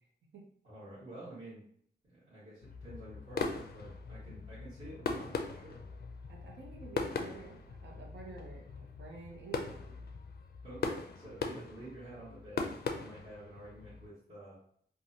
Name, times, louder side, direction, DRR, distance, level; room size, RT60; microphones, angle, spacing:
voice 1, 0.6-1.6 2.1-5.8 10.6-14.6, right 1 dB, 35° right, -14 dB, 1.4 m, -49 dB
sound 1, 2.6-14.1, left 4 dB, 55° left, 0.4 m, -40 dB
voice 2, 6.3-10.0, right 3 dB, 75° right, -1 dB, 0.7 m, -50 dB
3.0 x 2.2 x 2.6 m, 0.63 s
wide cardioid pair, 160°, 19 cm